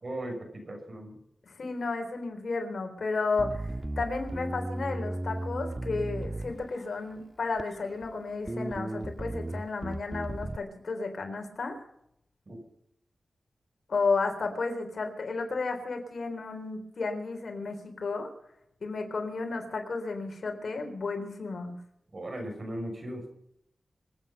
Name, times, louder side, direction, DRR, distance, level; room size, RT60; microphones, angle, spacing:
voice 1, 0.0-1.2 12.5-12.6 22.1-23.2, right 1 dB, 45° right, 3 dB, 6.1 m, -37 dB
voice 2, 1.5-3.7 4.0-11.8 13.9-18.3 18.8-21.7, left 3 dB, 70° left, 4 dB, 3.7 m, -32 dB
Bass guitar, 3.4-7.0 7.6-8.1 8.5-10.6, right 1 dB, 20° right, 0.6 m, -35 dB
26.0 x 9.3 x 5.6 m, 0.75 s
wide cardioid pair, 85°, 0 cm